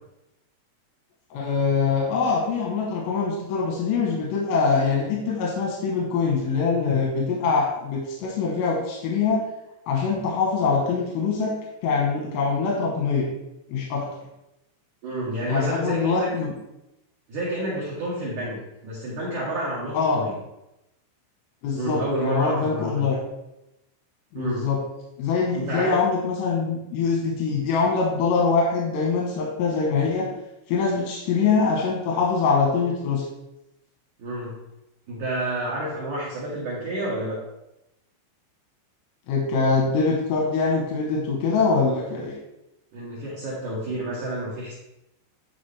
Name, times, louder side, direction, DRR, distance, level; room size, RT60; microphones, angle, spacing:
voice 1, 1.3-9.5 9.9-11.6 11.8-13.3 13.7-14.1 15.5-16.5 19.9-20.2 21.6-23.2 24.3-24.8 25.2-30.3 30.7-33.2 39.3-42.4, left 5 dB, 90° left, -2 dB, 3.7 m, -23 dB
voice 2, 15.0-16.3 17.3-20.3 21.7-23.1 24.3-24.7 25.5-26.0 34.2-34.6 35.1-37.4 42.9-44.7, right 1 dB, 85° right, -5 dB, 1.7 m, -29 dB
11.0 x 4.1 x 3.3 m, 0.90 s
omnidirectional pair, 5.6 m